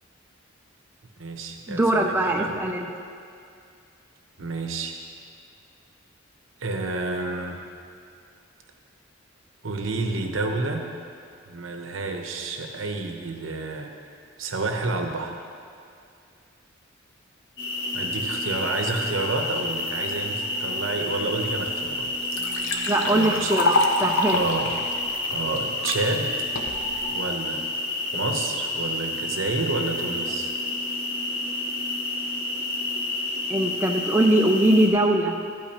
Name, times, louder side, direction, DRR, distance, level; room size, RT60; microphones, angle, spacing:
voice 1, 1.2-2.6 4.4-5.0 6.6-7.6 9.6-10.9 11.5-13.9 14.4-15.4 17.9-22.1 23.1-23.5 24.3-24.8 25.3-26.4 27.1-27.6 28.1-30.5, right 3 dB, 75° right, 4 dB, 0.9 m, -29 dB
voice 2, 1.7-2.9 22.9-24.4 33.5-35.4, right 1 dB, 10° right, 0 dB, 0.5 m, -21 dB
sound 1, 17.6-34.9, left 2 dB, 55° left, 1.9 m, -29 dB
Liquid, 22.0-26.0 26.6-27.0, left 2 dB, 85° left, 0.9 m, -26 dB
13.5 x 8.6 x 2.9 m, 2.4 s
head